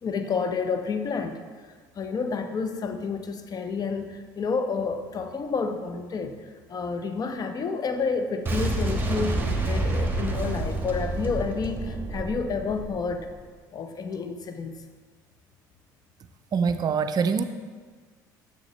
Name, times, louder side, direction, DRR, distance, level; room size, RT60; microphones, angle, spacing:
voice 1, 0.0-1.4 2.0-6.4 6.7-13.3 13.7-14.8, left 5 dB, 40° left, 7 dB, 0.7 m, -29 dB
Boom, 8.5-13.4, right 2 dB, 20° right, 1.2 m, -28 dB
voice 2, 16.5-17.4, right 5 dB, 40° right, 10 dB, 0.5 m, -24 dB
6.9 x 6.3 x 3.2 m, 1.5 s
hypercardioid pair, 70°, 10 cm